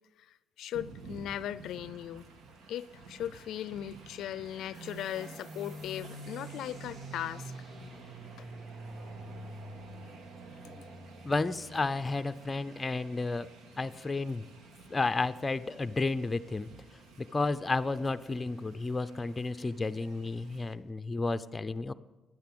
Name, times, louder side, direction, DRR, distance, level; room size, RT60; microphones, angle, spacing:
voice 1, 0.6-2.3 2.7-7.5 8.4-8.5, left 11 dB, 80° left, 17 dB, 0.4 m, -38 dB
Train, 0.7-20.7, right 3 dB, 80° right, 1.5 m, -52 dB
sound 1, 4.7-12.0, right 2 dB, 60° right, 3.4 m, -46 dB
voice 2, 11.2-13.5 13.8-14.5 14.9-16.7 17.3-21.9, left 3 dB, 25° left, 12 dB, 0.5 m, -32 dB
11.0 x 9.5 x 8.7 m, 1.2 s
cardioid pair, 90°, 0 cm